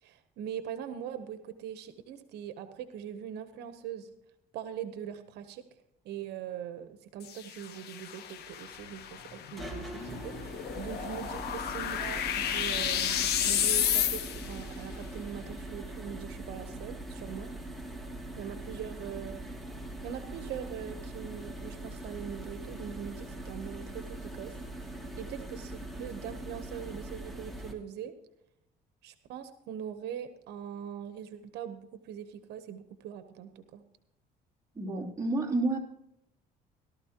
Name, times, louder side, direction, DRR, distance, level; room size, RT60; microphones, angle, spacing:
voice 1, 0.0-4.1 4.5-5.6 6.0-17.5 18.4-19.6 20.0-28.1 29.0-33.8, right 9 dB, 80° right, 10 dB, 1.0 m, -42 dB
sound 1, 7.2-14.6, left 10 dB, 75° left, 1.5 m, -32 dB
sound 2, 8.7-27.7, right 1 dB, ahead, 2.3 m, -42 dB
voice 2, 34.7-35.8, right 2 dB, 20° right, -4 dB, 3.0 m, -29 dB
17.5 x 12.5 x 2.9 m, 0.81 s
cardioid pair, 110°, 17 cm